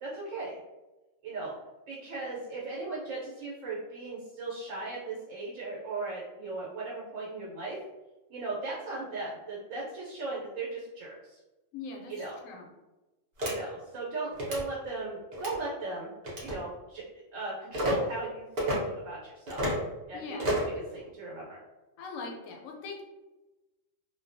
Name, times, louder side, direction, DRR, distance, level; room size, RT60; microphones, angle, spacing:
voice 1, 0.0-0.6 1.2-1.5 1.9-7.8 8.3-11.4 12.1-12.3 13.4-16.1 16.4-17.0 17.3-19.6 20.1-20.2 20.9-21.6, right 3 dB, 75° right, -6 dB, 1.0 m, -37 dB
voice 2, 11.7-12.7 20.1-20.6 22.0-23.0, left 3 dB, 90° left, 1 dB, 1.0 m, -41 dB
sound 1, 13.4-13.5 14.3-14.6 15.3-15.6 16.2-16.6 17.7-17.9 18.6-18.8 19.5-19.8 20.4-20.7, equal, 45° right, 0.6 m, -30 dB
2.3 x 2.1 x 2.5 m, 1.1 s
omnidirectional pair, 1.3 m